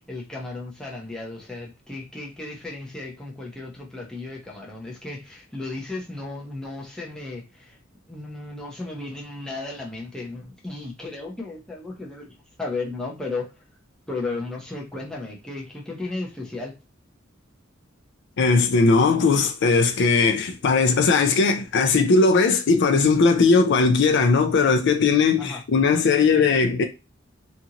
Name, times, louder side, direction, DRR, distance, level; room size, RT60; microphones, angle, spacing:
voice 1, 0.0-7.8 8.1-12.3 12.6-13.4 14.1-16.8 25.4-25.6, left 3 dB, 5° left, 0.7 m, -34 dB
voice 2, 18.4-26.8, left 4 dB, 60° left, 0.4 m, -19 dB
2.6 x 2.4 x 2.8 m
head